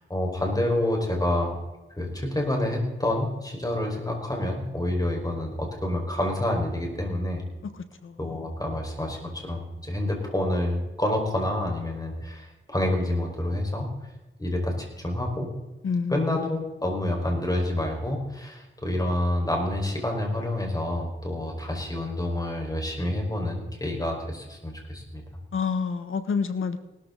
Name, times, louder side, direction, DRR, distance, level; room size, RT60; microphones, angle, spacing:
voice 1, 0.1-1.6 2.0-7.4 8.2-13.9 14.4-15.5 16.1-25.2, left 1 dB, 15° left, 1 dB, 5.2 m, -28 dB
voice 2, 8.0-8.4 15.8-16.6 25.5-26.8, left 5 dB, 75° left, 10 dB, 1.4 m, -28 dB
18.5 x 13.5 x 4.0 m, 1.0 s
cardioid pair, 70°, 21 cm